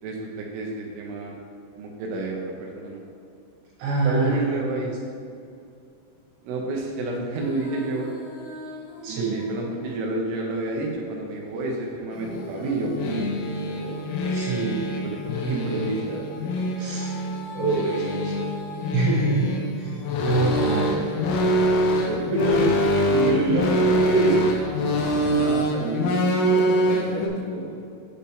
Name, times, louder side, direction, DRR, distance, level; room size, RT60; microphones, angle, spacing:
voice 1, 0.0-1.4 1.8-3.0 4.0-4.9 6.4-8.1 9.1-14.0 14.6-16.2 17.7-18.6 22.0-24.5 25.3-26.2 26.5-27.2 27.5-27.8, right 2 dB, 85° right, -1 dB, 2.3 m, -29 dB
voice 2, 3.8-4.4 4.8-4.9 9.0-9.4 14.3-14.7 16.8-17.2 17.5-18.3 18.9-21.0, right 3 dB, 65° right, -6 dB, 3.7 m, -25 dB
Female singing, 7.3-11.0 12.2-18.9, left 1 dB, 70° left, 3.6 m, -42 dB
sound 1, 12.1-27.3, equal, 90° left, 3.3 m, -24 dB
8.7 x 4.3 x 3.5 m, 2.5 s
omnidirectional pair, 5.7 m